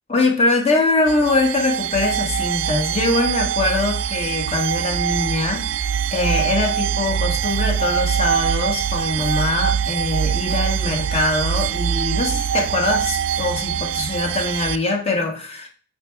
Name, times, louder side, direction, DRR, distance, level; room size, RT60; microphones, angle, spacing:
voice 1, 0.1-15.7, left 2 dB, 30° left, 2 dB, 1.4 m, -22 dB
sound 1, 1.1-14.8, right 8 dB, 85° right, 0.4 m, -23 dB
8.6 x 4.2 x 3.5 m, 0.40 s
head